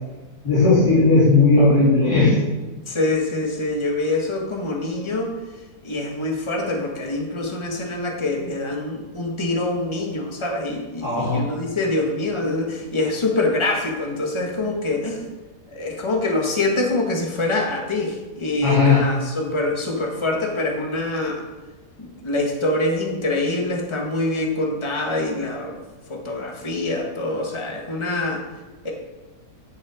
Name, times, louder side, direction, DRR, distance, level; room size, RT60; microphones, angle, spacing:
voice 1, 0.4-2.4 11.0-11.4 18.6-19.0, left 3 dB, 65° left, -11 dB, 3.6 m, -16 dB
voice 2, 2.9-5.4 5.8-15.2 15.7-21.4 22.0-25.8 26.1-28.4 28.8-28.9, left 2 dB, 20° left, 0 dB, 1.3 m, -25 dB
10.5 x 6.3 x 5.0 m, 1.2 s
omnidirectional pair, 1.8 m